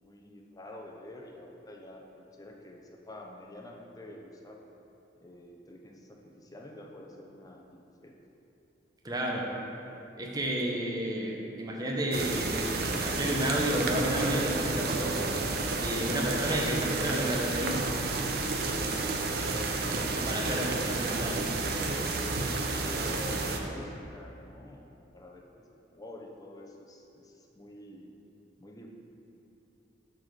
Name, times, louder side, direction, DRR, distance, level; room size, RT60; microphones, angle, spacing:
voice 1, 0.0-4.6 5.2-8.2 20.3-21.3 22.7-28.1 28.6-28.9, left 1 dB, 20° left, 0 dB, 0.7 m, -47 dB
voice 2, 9.0-9.5 10.2-12.6 13.0-15.2 15.7-17.8 20.2-21.3, right 1 dB, 20° right, -2 dB, 0.9 m, -31 dB
sound 1, 12.1-23.6, right 3 dB, 60° right, 0.7 m, -31 dB
7.6 x 4.2 x 6.6 m, 2.8 s
head